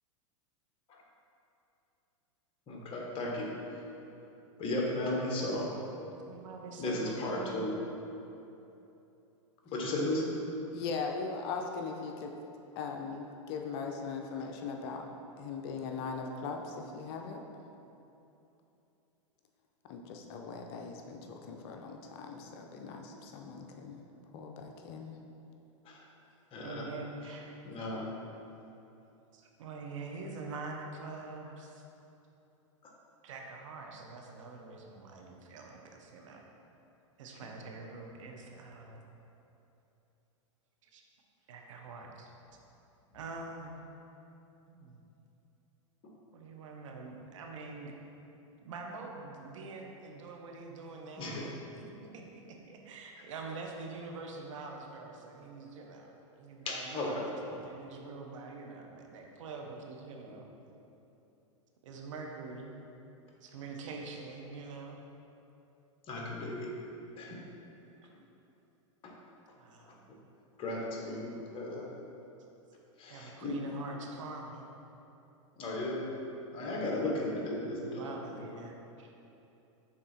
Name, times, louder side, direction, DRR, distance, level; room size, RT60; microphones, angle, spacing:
voice 1, 2.7-3.5 4.6-5.7 6.8-7.7 9.7-10.3 25.8-26.0 26.5-26.9 27.6-28.1 51.2-51.4 56.7-57.2 66.1-66.7 67.2-67.4 69.0-69.1 70.6-71.9 73.0-73.6 75.6-76.1 76.5-78.1, left 1 dB, 35° left, -2 dB, 1.2 m, -35 dB
voice 2, 6.0-7.7 26.6-27.5 29.3-31.8 33.2-36.4 37.2-39.1 40.8-41.0 41.5-42.3 43.1-43.8 44.7-45.0 46.3-47.9 48.6-51.5 51.8-52.2 52.5-60.5 61.8-62.8 63.4-65.0 68.0-68.1 69.6-70.1 73.1-74.8 76.8-76.9 77.1-77.4 77.6-79.1, right 3 dB, 70° right, 1 dB, 0.8 m, -45 dB
voice 3, 10.7-12.3 12.8-15.0 15.4-17.4 19.9-24.1 24.3-25.2, left 5 dB, 50° left, 3 dB, 0.6 m, -39 dB
5.9 x 3.8 x 4.2 m, 2.9 s
hypercardioid pair, 115°, 17 cm